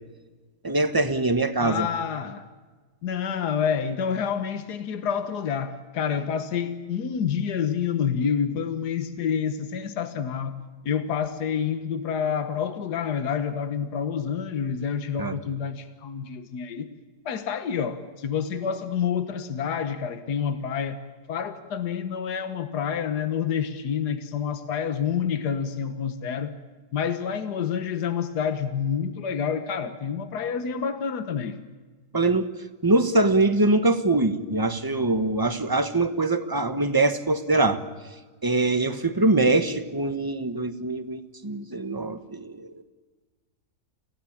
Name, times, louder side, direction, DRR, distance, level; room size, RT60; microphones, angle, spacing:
voice 1, 0.6-1.9 15.2-15.3 32.1-32.5 32.8-37.8 38.4-42.8, right 2 dB, 15° right, 9 dB, 1.2 m, -23 dB
voice 2, 1.6-2.5 3.0-10.6 10.8-16.9 17.3-21.0 21.3-26.5 26.9-31.6, left 7 dB, 75° left, 9 dB, 1.8 m, -28 dB
29.0 x 16.5 x 8.8 m, 1.4 s
omnidirectional pair, 1.8 m